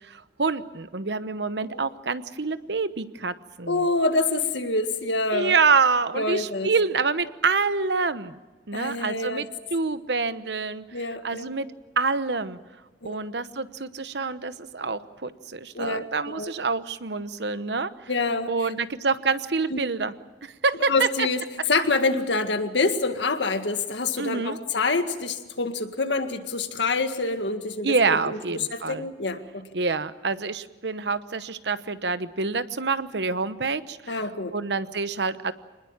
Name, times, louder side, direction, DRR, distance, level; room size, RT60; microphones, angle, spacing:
voice 1, 0.0-3.8 5.3-8.4 8.7-9.5 9.7-10.8 11.2-11.7 12.0-12.6 13.0-17.9 18.5-20.1 20.4-21.3 24.2-24.6 27.8-29.1 29.7-34.2 34.5-35.5, right 4 dB, 70° right, 13 dB, 1.0 m, -26 dB
voice 2, 3.7-5.6 6.1-6.7 8.7-9.5 10.9-11.5 13.0-13.2 15.7-16.5 18.1-18.7 19.7-19.8 20.9-21.4 21.7-29.7 34.1-34.5, left 3 dB, 85° left, 7 dB, 1.9 m, -26 dB
25.5 x 20.5 x 7.3 m, 1.2 s
head